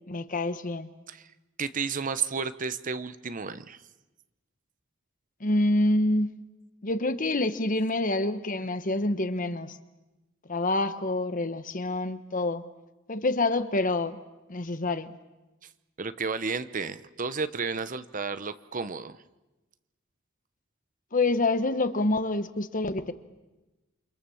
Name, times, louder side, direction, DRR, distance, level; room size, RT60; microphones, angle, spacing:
voice 1, 0.1-0.9 5.4-6.3 6.8-9.8 10.5-12.6 13.1-14.2 14.5-15.1 21.1-23.1, left 2 dB, 40° left, 11 dB, 1.3 m, -27 dB
voice 2, 1.6-3.8 15.6-15.7 16.0-19.2, right 5 dB, 40° right, 13 dB, 0.9 m, -32 dB
29.0 x 26.0 x 7.2 m, 1.1 s
head